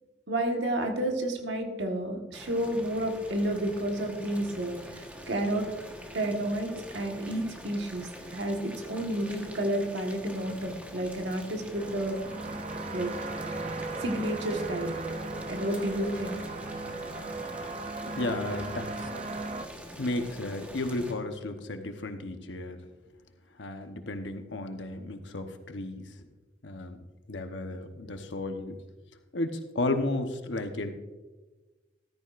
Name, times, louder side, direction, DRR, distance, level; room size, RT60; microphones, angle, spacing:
voice 1, 0.3-5.7 6.1-12.2 12.9-13.2 14.0-14.9 15.5-16.4, right 1 dB, 65° right, 3 dB, 1.5 m, -31 dB
Boiling, 2.3-21.1, equal, 10° right, 1.3 m, -45 dB
sound 1, 11.7-19.7, right 2 dB, 40° right, 0.7 m, -37 dB
voice 2, 18.1-19.1 20.0-22.8 23.6-26.1 26.6-27.0 27.3-28.8 29.3-30.9, left 2 dB, 70° left, 6 dB, 1.0 m, -33 dB
14.0 x 13.5 x 2.5 m, 1.2 s
head